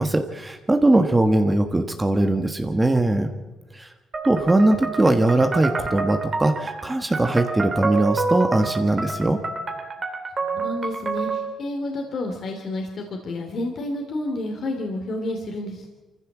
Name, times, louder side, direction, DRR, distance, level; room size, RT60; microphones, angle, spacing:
voice 1, 0.0-3.3 3.7-3.9 4.2-9.4, right 2 dB, 15° right, 6 dB, 1.4 m, -20 dB
sound 1, 4.1-11.5, right 4 dB, 35° right, 3.2 m, -28 dB
voice 2, 10.4-15.9, left 1 dB, 55° left, 2 dB, 2.8 m, -30 dB
24.0 x 15.0 x 7.3 m, 1.2 s
cardioid pair, 90°, 0 cm